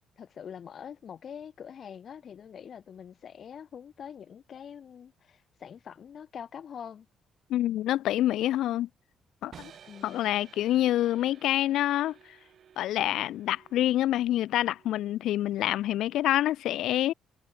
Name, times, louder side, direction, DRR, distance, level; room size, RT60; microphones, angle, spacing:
voice 1, 0.2-7.1 9.9-10.3, left 8 dB, 55° left, 3.6 m, -44 dB
voice 2, 7.5-8.9 9.4-9.7 10.0-12.1 12.8-17.1, left 13 dB, 85° left, 0.4 m, -27 dB
sound 1, 9.5-15.5, right 8 dB, 60° right, 8.0 m, -55 dB
cardioid pair, 90°, 0 cm